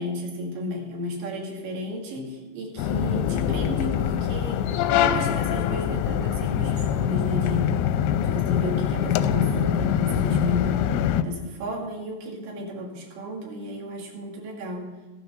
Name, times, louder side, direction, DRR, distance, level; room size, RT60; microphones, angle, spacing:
voice 1, 0.0-4.7 5.0-7.8 8.2-10.9 11.2-15.0, equal, 85° right, 0 dB, 4.7 m, -33 dB
sound 1, 2.8-11.2, left 9 dB, 90° left, 3.0 m, -24 dB
16.0 x 9.3 x 6.2 m, 1.2 s
omnidirectional pair, 5.0 m